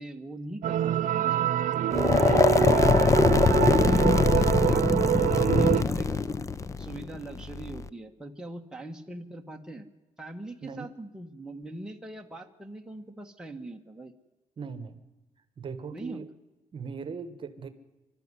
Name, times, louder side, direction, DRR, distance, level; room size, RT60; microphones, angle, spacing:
voice 1, 0.0-1.5 2.0-6.1 6.8-9.9 10.2-14.1 15.9-16.2, right 2 dB, 5° right, 2 dB, 1.4 m, -41 dB
sound 1, 0.6-5.8, right 11 dB, 70° right, 0.8 m, -26 dB
sound 2, 1.9-7.9, left 4 dB, 25° left, 0.6 m, -23 dB
voice 2, 1.9-2.5 5.7-6.2 10.6-10.9 14.6-15.0 15.6-16.3 16.7-17.7, right 5 dB, 40° right, 12 dB, 1.4 m, -40 dB
24.5 x 12.5 x 9.7 m, 1.2 s
cardioid pair, 145°, 13 cm